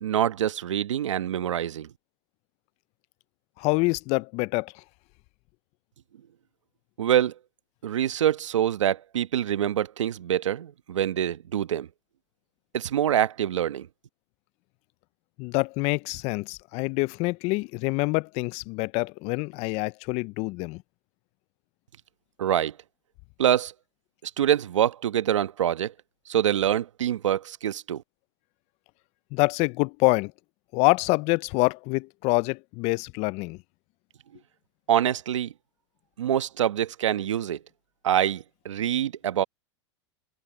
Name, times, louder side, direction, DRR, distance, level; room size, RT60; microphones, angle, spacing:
voice 1, 0.0-1.9 7.0-7.3 7.8-11.9 12.7-13.9 22.4-22.7 23.4-23.7 24.2-25.9 26.3-28.0 34.9-35.5 36.2-37.6 38.0-39.4, right 10 dB, 85° right, 1.3 m, -25 dB
voice 2, 3.6-4.8 15.4-20.8 29.3-30.3 30.7-33.6, left 26 dB, 45° left, 0.5 m, -26 dB
hypercardioid pair, 110°, 15 cm